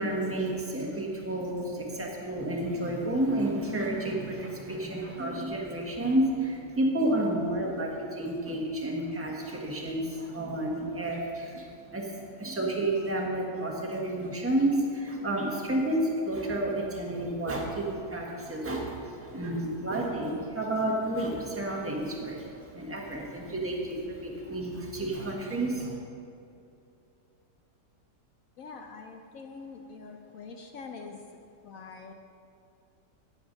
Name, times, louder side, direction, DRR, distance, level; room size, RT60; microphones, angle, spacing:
voice 1, 0.0-12.1 12.4-26.0, right 1 dB, 10° right, -1 dB, 1.2 m, -30 dB
voice 2, 28.6-32.1, left 4 dB, 65° left, 4 dB, 0.9 m, -44 dB
17.0 x 7.0 x 4.0 m, 2.5 s
omnidirectional pair, 1.9 m